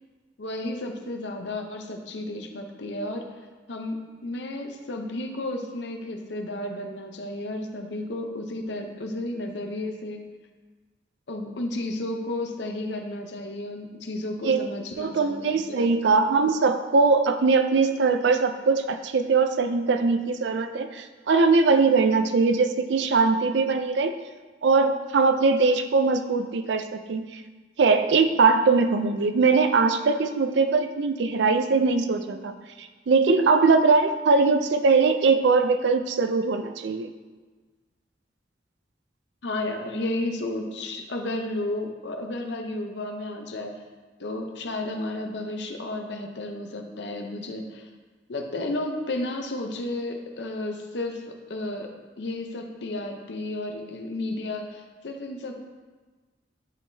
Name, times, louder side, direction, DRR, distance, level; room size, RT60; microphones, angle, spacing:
voice 1, 0.4-3.2 3.7-4.0 4.2-10.2 11.3-16.1 39.4-43.8 44.2-47.9 48.3-55.6, left 2 dB, 80° left, 3 dB, 0.7 m, -32 dB
voice 2, 15.0-24.1 24.6-27.4 27.8-37.1, right 4 dB, 80° right, 8 dB, 0.4 m, -21 dB
10.5 x 3.7 x 2.7 m, 1.3 s
head